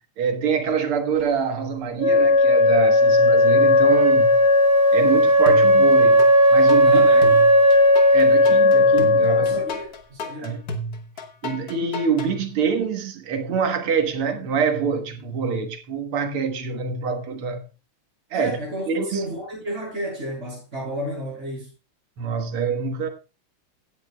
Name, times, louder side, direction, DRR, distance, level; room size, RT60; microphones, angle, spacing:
voice 1, 0.2-4.4 4.9-7.0 8.1-9.6 10.4-10.6 11.4-17.7 18.3-18.6 18.9-19.2 22.2-23.1, right 6 dB, 90° right, 2.3 m, -25 dB
Wind instrument woodwind instrument, 2.0-9.7, left 1 dB, 25° left, 2.3 m, -15 dB
sound 1, 5.5-6.3 6.7-12.3, left 1 dB, 50° left, 1.5 m, -32 dB
voice 2, 6.8-7.4 9.2-10.5 18.3-21.7, equal, 30° right, 6.5 m, -32 dB
16.0 x 9.7 x 2.3 m
omnidirectional pair, 2.3 m